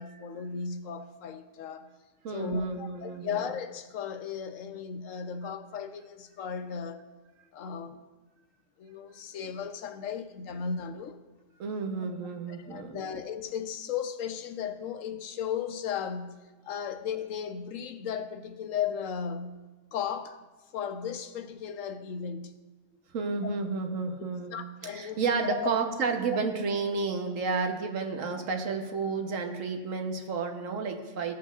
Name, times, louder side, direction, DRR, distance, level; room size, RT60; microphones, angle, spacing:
voice 1, 0.0-1.9 2.3-7.0 7.5-8.0 8.8-11.2 12.5-16.4 16.6-19.6 19.9-20.4 20.7-22.6 24.5-25.7, left 7 dB, 85° left, 9 dB, 1.1 m, -35 dB
voice 2, 2.2-3.4 11.6-13.0 23.1-24.6 24.9-31.3, right 4 dB, 90° right, 5 dB, 1.3 m, -31 dB
15.0 x 7.6 x 2.4 m, 1.2 s
omnidirectional pair, 1.3 m